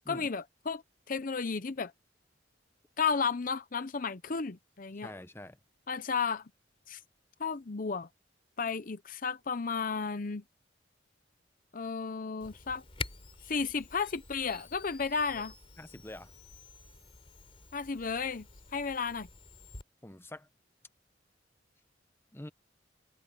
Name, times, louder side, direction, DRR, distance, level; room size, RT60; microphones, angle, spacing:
voice 1, 0.1-0.8 1.1-1.9 3.0-5.1 5.9-6.5 6.9-7.0 7.4-8.1 8.6-10.4 11.7-12.8 13.4-15.5 17.7-18.5 18.7-19.3, left 5 dB, 45° left, 0.7 m, -33 dB
voice 2, 5.0-5.6 15.3-15.4 15.8-16.3 20.0-20.5 22.3-22.5, left 1 dB, 15° left, 0.9 m, -46 dB
Camera, 12.4-19.8, left 3 dB, 30° left, 3.7 m, -47 dB
open air
head